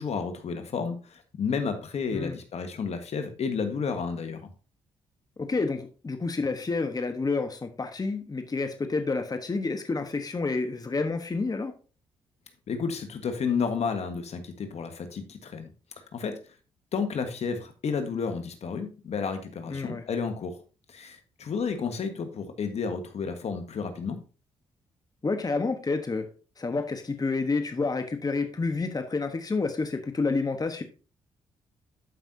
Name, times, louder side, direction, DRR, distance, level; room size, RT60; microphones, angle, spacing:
voice 1, 0.0-4.5 12.7-15.7 16.1-16.4 16.9-20.6 20.9-24.2, left 5 dB, 60° left, 7 dB, 1.5 m, -31 dB
voice 2, 5.4-11.7 19.7-20.0 25.2-26.3 26.6-30.8, left 3 dB, 30° left, 7 dB, 1.2 m, -29 dB
12.5 x 5.5 x 2.8 m, 0.35 s
supercardioid pair, 55°, 13 cm